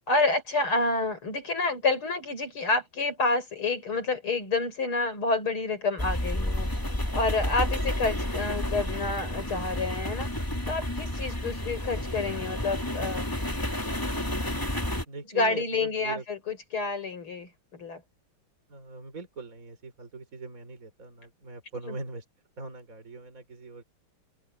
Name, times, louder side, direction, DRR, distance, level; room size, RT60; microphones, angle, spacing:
voice 1, 0.1-6.7 7.1-13.3 15.3-18.0 21.9-22.0, left 3 dB, 80° left, 6.7 m, -29 dB
sound 1, 6.0-15.0, left 1 dB, 10° left, 2.4 m, -31 dB
voice 2, 15.1-16.2 18.7-22.3 22.6-23.8, right 3 dB, 40° right, 4.3 m, -41 dB
open air
omnidirectional pair, 2.3 m